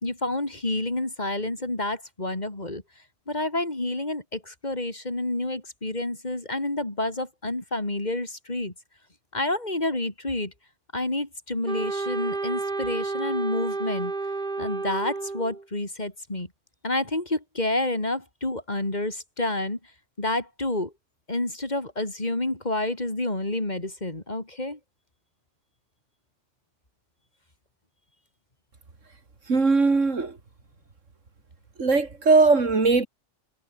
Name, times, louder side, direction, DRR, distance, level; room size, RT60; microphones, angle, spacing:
voice 1, 0.0-2.8 3.3-8.7 9.3-10.5 10.9-14.1 14.6-16.5 16.8-19.8 20.2-20.9 21.3-24.8, left 2 dB, 35° left, 3.5 m, -29 dB
Wind instrument woodwind instrument, 11.7-15.6, right 3 dB, 40° right, 2.2 m, -30 dB
voice 2, 29.5-30.4 31.8-33.1, right 3 dB, 90° right, 3.2 m, -20 dB
omnidirectional pair, 1.3 m